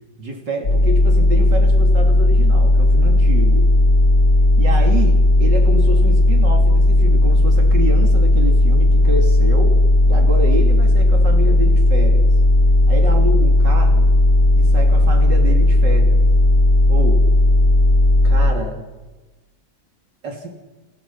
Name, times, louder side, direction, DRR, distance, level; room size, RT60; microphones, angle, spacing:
voice 1, 0.2-3.7 4.6-9.8 10.1-12.3 12.9-14.1 14.6-16.2 16.9-17.3 18.2-18.8 20.2-20.5, right 1 dB, 65° right, 2 dB, 3.7 m, -27 dB
sound 1, 0.6-18.5, left 1 dB, 30° left, 2.8 m, -14 dB
30.0 x 27.5 x 5.7 m, 1.2 s
omnidirectional pair, 2.0 m